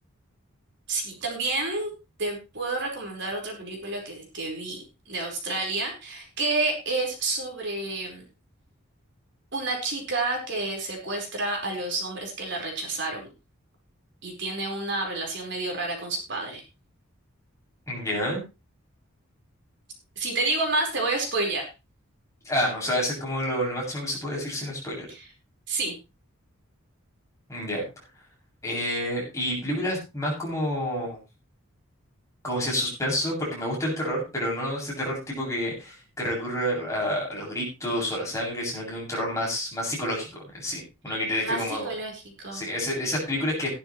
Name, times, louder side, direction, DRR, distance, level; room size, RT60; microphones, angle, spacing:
voice 1, 0.9-1.9 2.2-8.2 9.5-13.3 14.2-16.6 20.2-21.6 25.1-25.3 25.7-26.0 41.1-41.2 41.4-42.6, right 2 dB, 55° right, 1 dB, 5.0 m, -29 dB
voice 2, 17.9-18.4 22.4-25.1 27.5-27.8 28.6-31.2 32.4-41.9 42.5-43.7, equal, 15° left, -3 dB, 7.5 m, -29 dB
16.5 x 11.5 x 3.3 m, 0.27 s
head